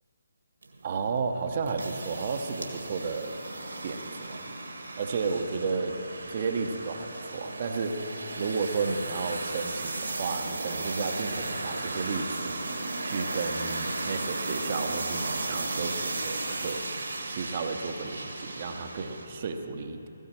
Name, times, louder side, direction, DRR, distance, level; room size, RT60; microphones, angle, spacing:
sound 1, 0.6-19.3, right 2 dB, 65° right, 1.8 m, -35 dB
voice 1, 0.8-3.4 3.8-4.5 5.0-5.9 6.3-8.0 8.3-12.5 13.0-16.8 17.2-20.1, right 4 dB, 40° right, 6 dB, 0.9 m, -32 dB
16.5 x 16.0 x 4.5 m, 2.9 s
figure-of-eight pair, 145°, 0 cm